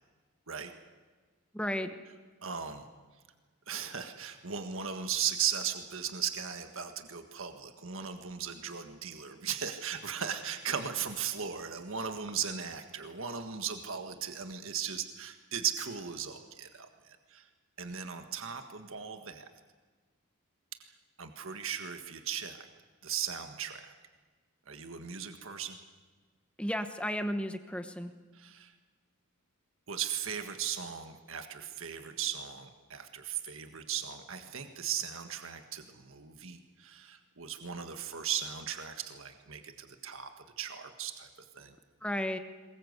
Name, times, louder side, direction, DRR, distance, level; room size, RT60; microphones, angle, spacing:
voice 1, 1.5-1.9 26.6-28.1 42.0-42.4, equal, 5° left, 8 dB, 1.1 m, -33 dB
voice 2, 2.4-2.9 3.7-17.5 17.8-19.5 20.8-22.7 23.0-23.9 24.7-25.8 28.3-28.7 29.9-40.3 40.6-41.3 41.5-41.8, right 8 dB, 65° right, 7 dB, 1.7 m, -37 dB
23.0 x 21.0 x 8.1 m, 1.4 s
head